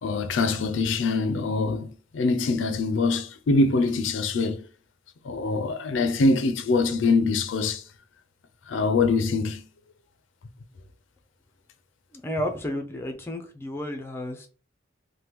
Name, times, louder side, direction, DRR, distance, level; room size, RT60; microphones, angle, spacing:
voice 1, 0.0-4.6 5.2-7.8 8.7-9.6, left 3 dB, 75° left, 0.4 m, -24 dB
voice 2, 12.1-14.5, equal, 10° left, 0.4 m, -32 dB
2.9 x 2.2 x 3.3 m
head